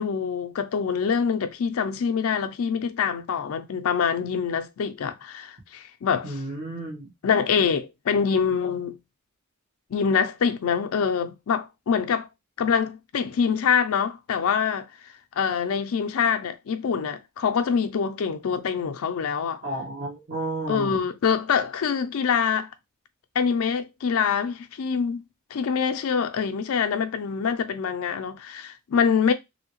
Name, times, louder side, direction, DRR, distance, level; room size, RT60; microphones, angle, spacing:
voice 1, 0.0-6.4 7.2-9.0 9.9-12.3 12.6-14.9 15.4-19.6 20.7-22.7 23.4-25.2 25.5-29.3, left 6 dB, 70° left, 0.4 m, -25 dB
voice 2, 6.2-7.1 19.6-21.0, right 2 dB, 40° right, 1.0 m, -32 dB
3.0 x 2.7 x 2.9 m
head